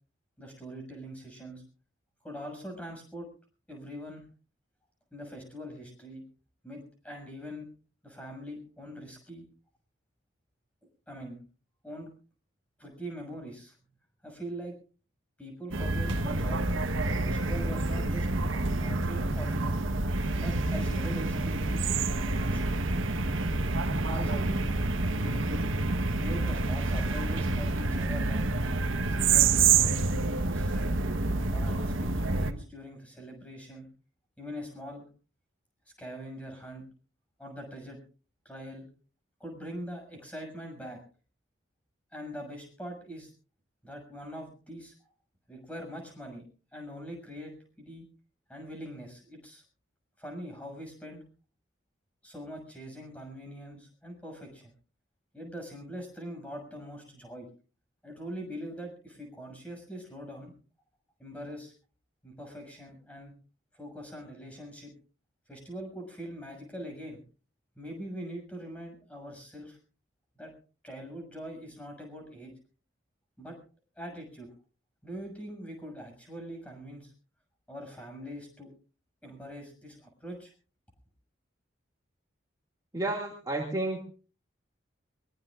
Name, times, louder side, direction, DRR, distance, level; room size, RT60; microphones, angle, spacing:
voice 1, 0.4-1.6 2.2-3.3 3.7-4.2 5.1-6.2 6.6-7.7 8.0-9.4 11.1-11.4 11.8-12.1 12.8-13.8 14.2-14.7 15.4-16.7 17.1-18.3 18.7-19.7 20.4-22.8 24.1-24.7 25.2-25.6 26.1-28.5 29.1-31.0 31.5-33.9 34.4-35.0 36.0-36.8 37.4-38.0 38.4-38.9 39.4-41.0 42.1-43.3 43.8-44.9 45.5-46.4 46.7-48.1 48.5-49.6 50.2-51.2 52.2-54.7 55.3-57.5 58.0-60.5 61.2-61.7 62.2-63.3 63.7-64.9 65.5-67.2 67.8-69.8 70.4-70.5 70.8-72.5 73.4-73.6 74.0-74.5 75.0-77.1 77.7-78.7 79.2-80.5, equal, 5° left, 2 dB, 6.4 m, -42 dB
sound 1, 15.7-32.5, right 3 dB, 80° right, 1.2 m, -28 dB
voice 2, 82.9-84.0, right 2 dB, 20° right, 0 dB, 2.1 m, -31 dB
22.5 x 21.5 x 2.4 m, 0.37 s
head